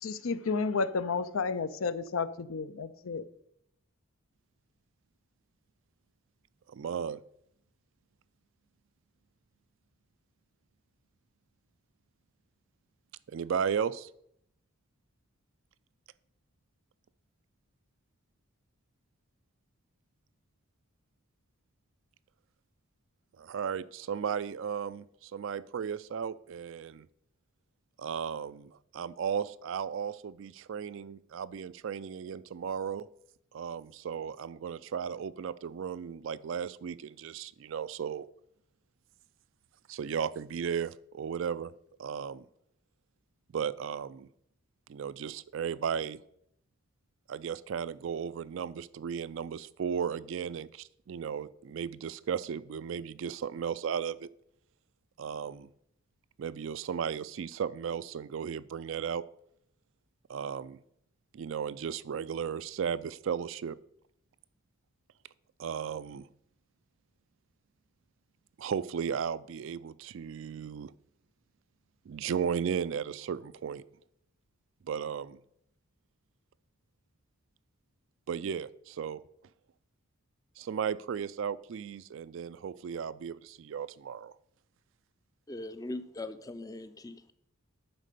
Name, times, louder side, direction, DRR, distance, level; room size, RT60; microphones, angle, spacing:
voice 1, 0.0-3.2, left 4 dB, 70° left, 0.5 m, -31 dB
voice 2, 6.7-7.2 13.3-14.1 23.4-27.1 28.0-33.1 33.5-38.3 39.9-41.7 42.0-42.4 43.5-44.3 44.9-46.2 47.3-54.3 55.2-55.7 56.4-59.2 60.3-60.8 61.3-63.8 65.6-66.3 68.6-70.9 72.1-73.8 74.9-75.4 78.3-79.2 80.6-84.3, right 7 dB, 60° right, 0.3 m, -35 dB
voice 3, 85.5-87.3, left 2 dB, 15° left, 0.4 m, -40 dB
10.5 x 4.2 x 6.7 m
head